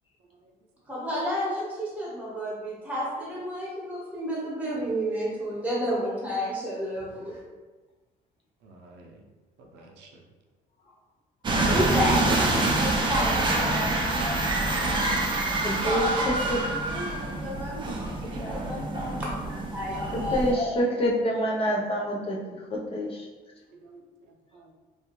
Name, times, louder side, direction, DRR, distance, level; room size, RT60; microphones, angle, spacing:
voice 1, 0.9-7.4 11.7-12.5 13.1-14.4 15.8-20.7, equal, 10° right, -6 dB, 1.0 m, -31 dB
voice 2, 8.6-9.2 9.6-10.2 23.7-24.7, right 2 dB, 90° right, 1 dB, 0.5 m, -52 dB
sound 1, 11.4-20.5, right 2 dB, 30° right, 0.5 m, -26 dB
voice 3, 11.7-12.0 15.5-16.1 16.5-16.6 17.2-17.4 18.4-18.7 20.1-23.3, equal, 35° left, -2 dB, 0.5 m, -28 dB
2.4 x 2.2 x 2.9 m, 1.3 s
cardioid pair, 110°, 17 cm